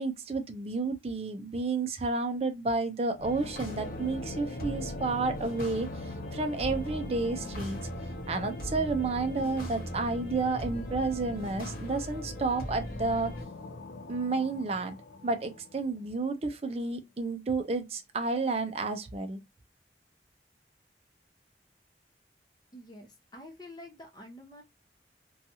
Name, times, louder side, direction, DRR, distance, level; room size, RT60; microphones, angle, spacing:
voice 1, 0.0-7.8 8.3-13.3 14.1-15.0 15.2-19.4, right 3 dB, 35° right, 0.4 m, -31 dB
sound 1, 3.1-16.2, left 2 dB, 85° left, 0.4 m, -42 dB
sound 2, 3.2-13.4, equal, 50° left, 1.1 m, -41 dB
voice 2, 22.7-24.6, left 1 dB, 25° left, 0.6 m, -48 dB
2.7 x 2.3 x 2.7 m
head